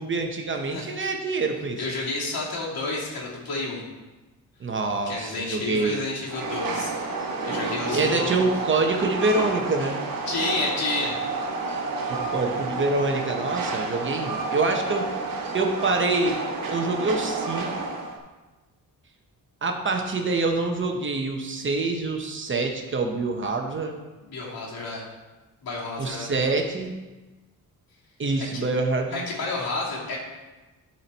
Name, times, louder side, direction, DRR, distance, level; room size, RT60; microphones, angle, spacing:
voice 1, 0.0-1.8 4.6-6.0 7.9-10.0 12.1-15.1 15.5-16.4 16.7-17.9 19.6-23.9 26.0-26.9 28.2-29.3, right 3 dB, 35° right, 3 dB, 0.8 m, -26 dB
voice 2, 1.8-3.8 5.1-8.4 10.3-11.2 24.2-25.0 25.6-26.3 28.5-28.6 29.1-30.2, left 3 dB, 80° left, -5 dB, 2.5 m, -30 dB
Train, 6.3-18.2, right 3 dB, 70° right, 1.3 m, -30 dB
12.5 x 4.4 x 4.0 m, 1.2 s
wide cardioid pair, 165°, 36 cm